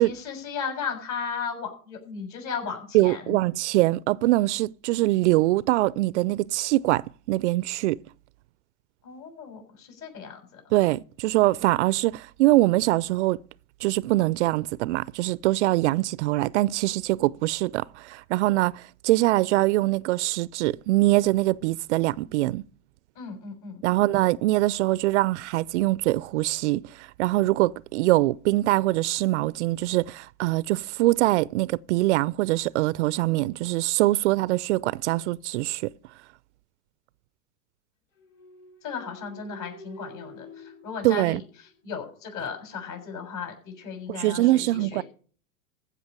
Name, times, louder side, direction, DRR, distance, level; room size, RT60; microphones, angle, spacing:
voice 1, 0.0-3.3 9.0-10.7 23.2-23.8 38.8-45.0, left 6 dB, 45° left, 7.0 m, -36 dB
voice 2, 2.9-8.0 10.7-13.4 13.8-22.6 23.8-35.9 41.0-41.4 44.1-45.0, right 18 dB, 60° right, 0.5 m, -23 dB
sound 1, 38.2-42.0, left 1 dB, 70° left, 7.0 m, -48 dB
15.0 x 6.1 x 8.6 m
hypercardioid pair, 105°, 40 cm